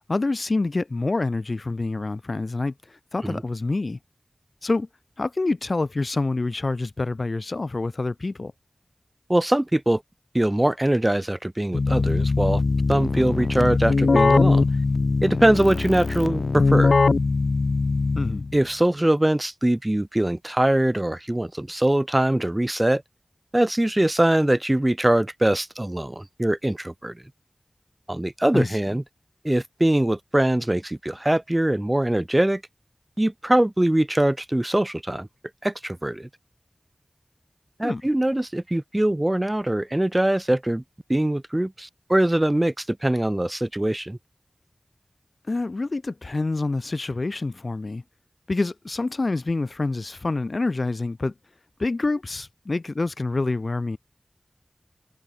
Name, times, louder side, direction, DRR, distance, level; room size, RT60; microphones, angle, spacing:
voice 1, 0.1-2.7 3.1-4.0 4.6-4.9 5.2-8.5 18.2-18.5 28.5-28.8 37.8-38.0 45.5-48.0 48.5-51.3 51.8-54.0, left 3 dB, 65° left, 7.9 m, -26 dB
voice 2, 9.3-10.0 10.3-12.6 12.9-14.7 15.2-16.9 18.5-23.0 23.5-27.2 28.1-29.0 29.4-32.6 33.2-35.3 35.6-36.3 37.8-40.8 41.1-44.2, right 1 dB, 25° right, 2.5 m, -22 dB
Keyboard (musical), 11.7-18.6, left 3 dB, 90° left, 4.4 m, -21 dB
wide cardioid pair, 50°, 0 cm